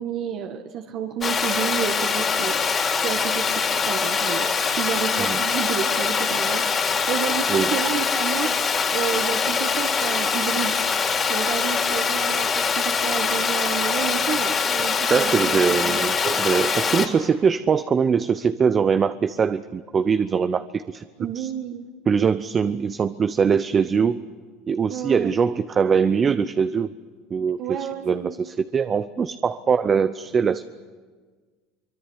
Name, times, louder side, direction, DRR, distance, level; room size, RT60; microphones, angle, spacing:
voice 1, 0.0-2.6 2.9-6.7 7.1-8.5 8.9-10.8 11.3-16.0 21.2-21.9 24.9-25.3 27.6-28.4, right 9 dB, 55° right, 4 dB, 1.8 m, -30 dB
Water, 1.2-17.1, left 5 dB, 30° left, 3.4 m, -23 dB
voice 2, 14.9-21.0 21.3-21.5 22.1-24.2 24.7-26.9 27.3-30.6, right 6 dB, 30° right, 12 dB, 0.8 m, -22 dB
24.0 x 22.5 x 8.2 m, 1.5 s
supercardioid pair, 110°, 0 cm